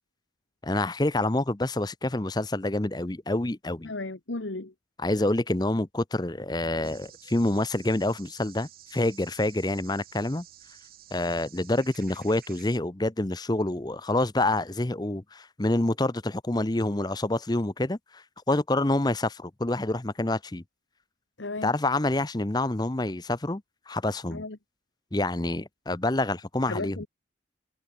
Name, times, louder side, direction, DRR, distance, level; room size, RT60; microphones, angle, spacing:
voice 1, 0.6-3.9 5.0-10.4 11.1-20.6 21.6-24.4 25.1-27.1, left 2 dB, 20° left, 0.8 m, -27 dB
voice 2, 3.8-4.7 21.4-21.7 24.3-24.6 26.7-27.1, left 2 dB, 75° left, 1.5 m, -34 dB
sound 1, 6.8-12.8, right 11 dB, 50° right, 7.9 m, -51 dB
head